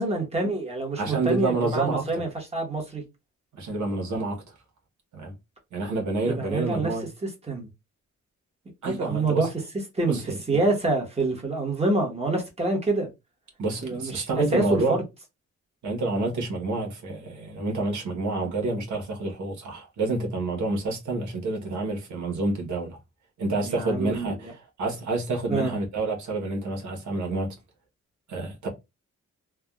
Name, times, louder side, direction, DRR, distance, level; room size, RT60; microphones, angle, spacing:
voice 1, 0.0-3.0 6.3-6.9 7.2-7.7 8.8-9.5 9.9-10.2 10.5-13.1 13.8-14.3 14.5-15.0 23.6-24.5 25.5-25.7, right 2 dB, 20° right, 1.1 m, -26 dB
voice 2, 1.0-2.2 3.5-4.5 5.1-5.3 5.7-7.0 8.8-9.5 10.1-10.6 13.6-15.0 15.8-23.0 23.4-27.6 28.3-28.7, right 2 dB, 85° right, 1.1 m, -28 dB
3.4 x 2.2 x 2.3 m
cardioid pair, 105°, 29 cm